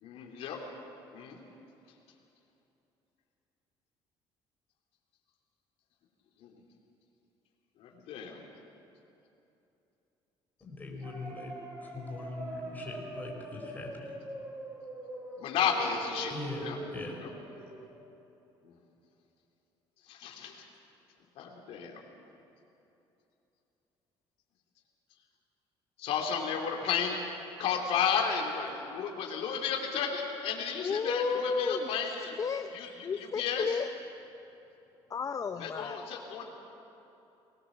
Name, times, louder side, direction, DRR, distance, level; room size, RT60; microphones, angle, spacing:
voice 1, 0.0-0.6 1.1-1.4 6.4-6.5 7.8-8.4 15.4-17.3 18.6-18.7 20.1-20.7 21.4-22.0 26.0-27.2 27.6-32.4 32.7-33.8 35.6-36.5, left 6 dB, 75° left, 1 dB, 2.7 m, -33 dB
voice 2, 10.6-11.5 11.8-14.1 16.3-16.7 16.9-17.2, left 3 dB, 15° left, 0 dB, 4.9 m, -41 dB
sound 1, 11.0-17.9, right 2 dB, 35° right, 3.6 m, -43 dB
voice 3, 30.8-31.9 32.4-32.7 33.0-33.9 35.1-36.0, left 5 dB, 35° left, 8 dB, 0.7 m, -32 dB
21.0 x 18.0 x 7.2 m, 2.9 s
cardioid pair, 110°, 10 cm